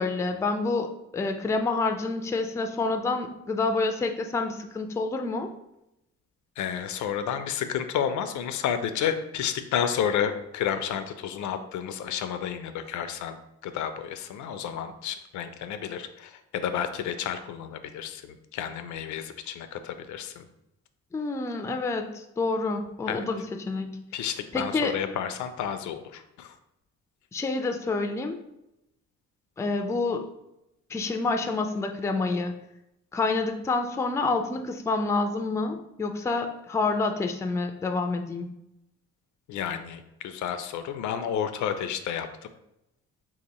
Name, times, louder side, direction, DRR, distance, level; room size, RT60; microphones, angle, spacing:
voice 1, 0.0-5.5 21.1-24.0 24.5-24.9 27.3-28.4 29.6-30.3 30.9-32.5 33.1-38.5, left 3 dB, 10° left, 6 dB, 0.3 m, -28 dB
voice 2, 6.6-13.4 13.6-20.5 23.1-23.2 24.1-26.5 39.5-42.3, left 8 dB, 70° left, 9 dB, 0.4 m, -31 dB
3.0 x 2.8 x 4.0 m, 0.87 s
cardioid pair, 90°, 30 cm